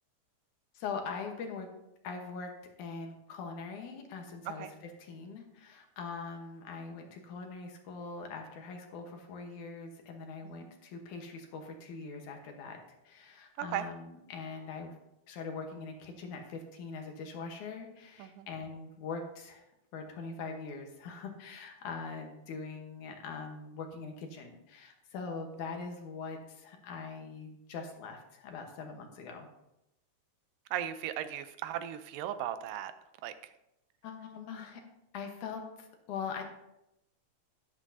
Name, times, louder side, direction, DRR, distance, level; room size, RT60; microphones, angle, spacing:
voice 1, 0.7-1.7 2.0-2.5 2.8-12.8 13.0-15.0 15.3-19.6 19.9-29.5 34.0-34.8 35.1-36.4, left 5 dB, 70° left, 3 dB, 2.5 m, -42 dB
voice 2, 13.6-13.9 18.2-18.5 30.7-32.9 33.2-33.5, right 11 dB, 90° right, 12 dB, 2.3 m, -37 dB
11.5 x 10.5 x 2.7 m, 0.87 s
omnidirectional pair, 3.8 m